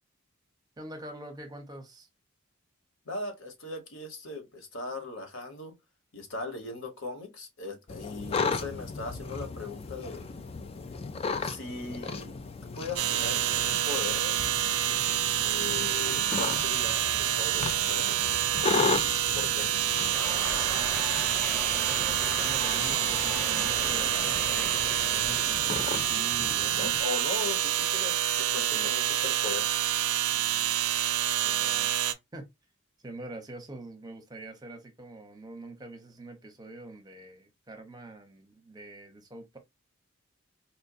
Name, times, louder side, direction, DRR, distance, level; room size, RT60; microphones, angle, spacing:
voice 1, 0.8-2.1 21.7-27.0 27.4-27.5 28.6-28.9 30.3-30.8 31.4-31.9 32.3-32.5 33.0-39.6, right 2 dB, 20° right, 0.8 m, -45 dB
voice 2, 3.0-5.8 6.1-10.2 11.4-12.3 12.7-14.4 15.4-18.5 19.2-19.7 26.8-29.7, left 3 dB, 65° left, 1.2 m, -39 dB
sound 1, 7.9-27.0, left 4 dB, 30° left, 0.3 m, -36 dB
sound 2, 13.0-32.1, right 11 dB, 90° right, 0.5 m, -27 dB
sound 3, 20.1-25.8, right 1 dB, 5° left, 0.9 m, -38 dB
4.3 x 2.2 x 2.6 m
head